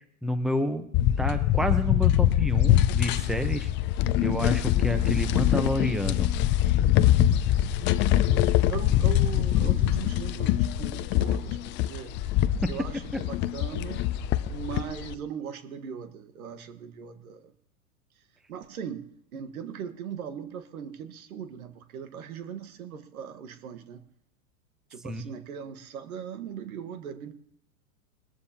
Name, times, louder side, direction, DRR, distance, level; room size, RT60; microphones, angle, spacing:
voice 1, 0.2-0.8 1.2-3.7 4.2-6.3 12.6-12.7 25.0-25.2, equal, ahead, 9 dB, 0.9 m, -29 dB
sound 1, 0.9-15.1, left 12 dB, 25° left, 0.5 m, -24 dB
voice 2, 7.0-7.7 8.7-12.1 12.7-14.1 14.5-17.5 18.5-24.0 24.9-27.3, right 8 dB, 80° right, 9 dB, 1.5 m, -39 dB
21.5 x 14.0 x 2.9 m, 0.69 s
hypercardioid pair, 115°, 43 cm